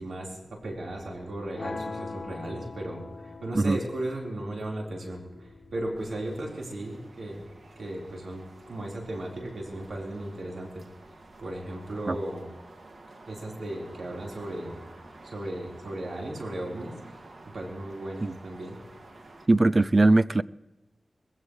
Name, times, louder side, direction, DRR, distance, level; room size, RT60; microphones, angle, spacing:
voice 1, 0.0-7.4 7.8-10.8 11.4-12.5 13.3-14.8 15.2-16.9 17.5-18.8, right 1 dB, 90° right, 4.2 m, -36 dB
sound 1, 1.6-7.6, left 3 dB, 55° left, 1.1 m, -42 dB
sound 2, 6.0-19.5, right 2 dB, 65° right, 2.1 m, -50 dB
voice 2, 19.5-20.4, right 2 dB, 40° right, 0.4 m, -20 dB
21.5 x 15.5 x 3.2 m
wide cardioid pair, 70°, 0 cm